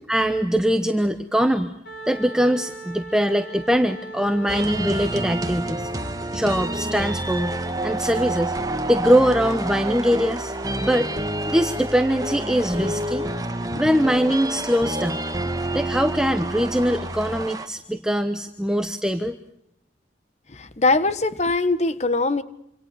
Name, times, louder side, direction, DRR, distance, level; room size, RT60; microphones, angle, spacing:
voice 1, 0.1-1.7 2.1-5.9 6.3-7.6 7.8-8.5 8.9-10.5 10.8-11.1 11.5-13.3 13.8-15.2 15.7-19.4, equal, 5° right, 7 dB, 1.0 m, -22 dB
Wind instrument woodwind instrument, 1.8-6.5, right 2 dB, 65° left, 6.0 m, -39 dB
sound 1, 4.5-17.7, right 1 dB, 20° right, 1.8 m, -28 dB
voice 2, 20.5-22.4, left 3 dB, 35° left, 13 dB, 1.4 m, -22 dB
27.0 x 26.5 x 6.7 m, 0.80 s
head